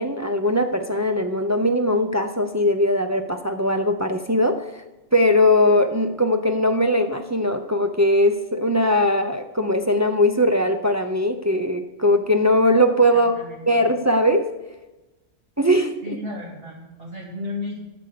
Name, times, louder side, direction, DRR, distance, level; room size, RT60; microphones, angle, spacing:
voice 1, 0.0-4.7 5.1-13.3 13.7-14.5 15.6-16.0, left 1 dB, 20° right, 6 dB, 0.4 m, -20 dB
voice 2, 13.1-13.8 16.0-17.8, left 2 dB, 50° right, -2 dB, 3.0 m, -34 dB
12.5 x 6.8 x 6.7 m, 1.1 s
omnidirectional pair, 1.3 m